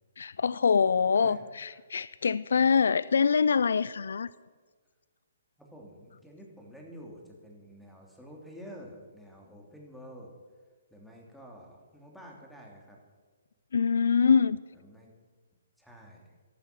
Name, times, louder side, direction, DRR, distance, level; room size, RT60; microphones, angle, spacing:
voice 1, 0.2-4.3 13.7-14.6, left 6 dB, 75° left, 0.4 m, -24 dB
voice 2, 5.6-10.3 10.9-13.0 14.7-15.1 15.8-16.4, equal, ahead, 2.9 m, -49 dB
14.0 x 11.5 x 6.1 m
hypercardioid pair, 145°, 0 cm